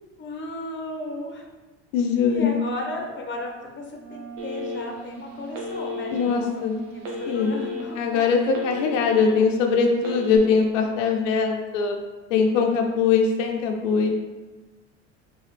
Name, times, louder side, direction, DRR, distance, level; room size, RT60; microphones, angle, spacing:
voice 1, 0.2-1.4 2.3-6.5 6.9-8.3, left 2 dB, 30° left, 1 dB, 0.9 m, -35 dB
voice 2, 1.9-2.6 6.1-6.8 7.3-7.5 8.0-12.0 12.3-14.1, left 5 dB, 85° left, 3 dB, 0.5 m, -21 dB
Wind instrument woodwind instrument, 3.9-10.8, right 4 dB, 30° right, 1.3 m, -41 dB
Telephone, 4.4-5.1 5.5-6.3 7.0-7.8 8.2-9.3 10.0-10.4, left 2 dB, 85° right, 0.9 m, -33 dB
3.8 x 2.9 x 3.2 m, 1.2 s
hypercardioid pair, 85°, 37 cm